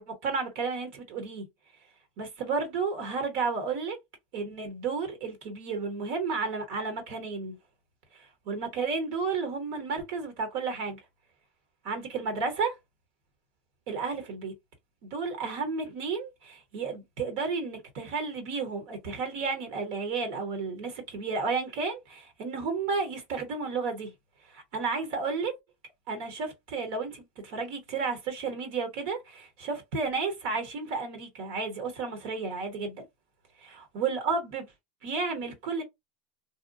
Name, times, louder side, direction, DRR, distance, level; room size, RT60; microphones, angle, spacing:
voice 1, 0.0-1.5 2.2-4.0 4.3-7.6 8.1-11.0 11.8-12.7 13.9-14.5 15.0-24.1 24.5-25.5 26.1-33.0 33.6-34.7 35.0-35.8, right 4 dB, 60° right, 1.0 m, -32 dB
2.8 x 2.1 x 2.5 m
hypercardioid pair, 105°, 4 cm